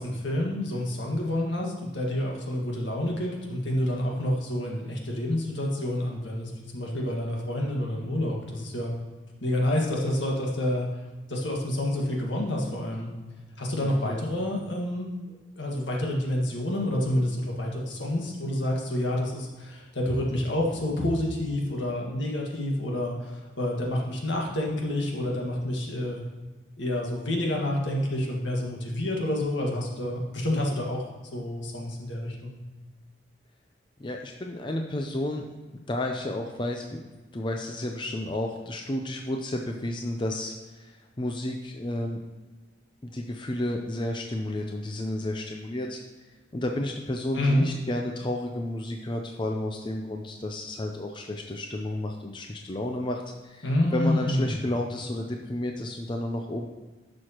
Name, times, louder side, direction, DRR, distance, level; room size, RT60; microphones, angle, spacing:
voice 1, 0.0-8.9 9.4-10.9 11.3-13.1 13.6-15.1 15.6-26.2 26.8-31.0 31.3-32.6 47.3-47.7 53.6-54.6, left 1 dB, 75° left, -2 dB, 1.7 m, -28 dB
voice 2, 13.8-14.2 34.0-35.5 35.9-40.9 41.2-42.2 43.0-46.0 46.5-53.7 53.9-56.7, left 1 dB, 25° left, 2 dB, 0.5 m, -31 dB
11.0 x 6.3 x 3.0 m, 1.3 s
head